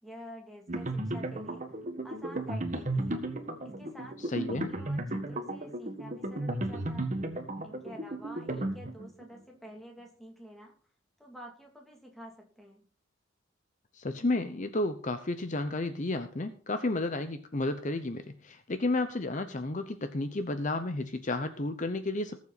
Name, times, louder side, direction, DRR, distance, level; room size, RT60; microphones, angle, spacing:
voice 1, 0.0-1.8 2.0-3.2 3.6-7.1 7.6-10.7 11.2-12.9, equal, ahead, 0 dB, 2.7 m, -49 dB
sound 1, 0.7-9.2, right 1 dB, 40° right, 1.6 m, -34 dB
voice 2, 4.3-4.7 13.9-22.4, left 2 dB, 40° left, 9 dB, 0.8 m, -32 dB
19.0 x 7.4 x 4.1 m, 0.42 s
head